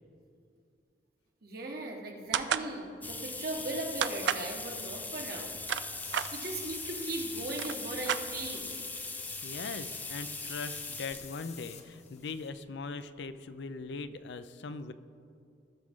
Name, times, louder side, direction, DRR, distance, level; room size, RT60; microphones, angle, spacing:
voice 1, 1.4-5.5 6.3-8.7, right 2 dB, 55° right, 1 dB, 1.4 m, -38 dB
sound 1, 2.3-2.7 4.0-4.5 5.4-6.3 7.1-7.2 7.5-8.7, right 9 dB, 75° right, 0.4 m, -31 dB
sound 2, 3.0-11.3 12.1-12.2 13.5-13.6 13.9-14.0 14.3-14.4, left 3 dB, 10° left, 0.5 m, -40 dB
sound 3, 6.0-12.5, left 7 dB, 40° left, 0.8 m, -49 dB
voice 2, 9.4-14.9, left 4 dB, 70° left, 12 dB, 0.5 m, -40 dB
18.5 x 6.4 x 3.7 m, 2.4 s
head